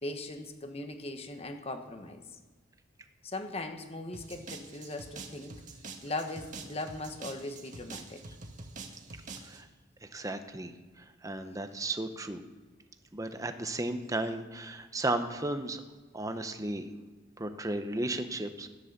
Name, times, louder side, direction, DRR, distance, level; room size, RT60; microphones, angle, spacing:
voice 1, 0.0-2.4 3.2-5.6 6.0-8.2, left 2 dB, 30° left, 7 dB, 1.3 m, -39 dB
sound 1, 4.1-9.6, right 3 dB, 40° right, 1.4 m, -46 dB
voice 2, 10.0-12.4 13.1-15.8 16.1-16.9 17.4-18.7, right 2 dB, 15° right, 8 dB, 0.9 m, -34 dB
13.5 x 10.5 x 6.8 m, 1.3 s
head